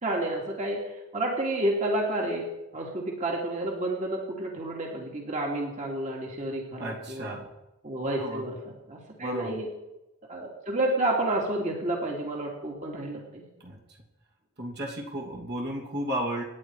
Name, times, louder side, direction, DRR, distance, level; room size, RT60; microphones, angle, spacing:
voice 1, 0.0-2.5 2.7-7.4 7.8-8.6 8.9-9.7 10.3-13.5, right 1 dB, 35° right, -1 dB, 2.9 m, -30 dB
voice 2, 6.8-7.5 8.0-8.4 9.2-9.6 13.6-13.8 14.6-16.4, right 1 dB, 50° right, -1 dB, 3.0 m, -33 dB
27.5 x 10.0 x 4.9 m, 0.96 s
head